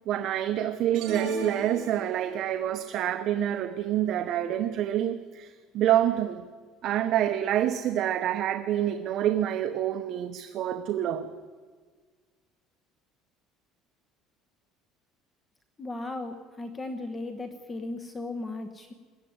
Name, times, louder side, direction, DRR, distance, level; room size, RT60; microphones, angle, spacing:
voice 1, 0.1-6.5 6.8-11.3, right 11 dB, 45° right, 8 dB, 0.9 m, -27 dB
sound 1, 0.9-2.5, right 5 dB, 75° right, 5.6 m, -34 dB
voice 2, 15.8-18.9, left 2 dB, 15° left, 7 dB, 1.1 m, -36 dB
21.0 x 14.5 x 9.5 m, 1.5 s
cardioid pair, 170°, 0 cm